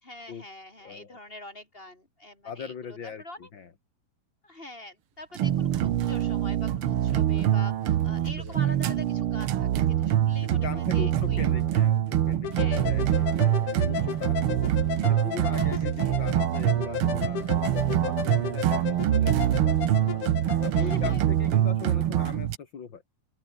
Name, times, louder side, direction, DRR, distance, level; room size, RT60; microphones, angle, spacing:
voice 1, 0.0-3.5 4.4-11.5 12.5-12.9 13.1-13.5 15.5-15.7 16.0-16.2 17.6-18.1 20.7-21.5, left 1 dB, 15° left, 4.0 m, -45 dB
voice 2, 0.8-1.2 2.4-3.2 3.5-3.7 8.4-8.8 10.4-14.7 15.1-19.7 20.0-20.2 20.6-23.0, left 6 dB, 40° left, 2.6 m, -40 dB
sound 1, 5.4-22.6, right 11 dB, 65° right, 1.3 m, -25 dB
sound 2, 12.4-21.2, left 10 dB, 70° left, 3.2 m, -34 dB
open air
omnidirectional pair, 3.9 m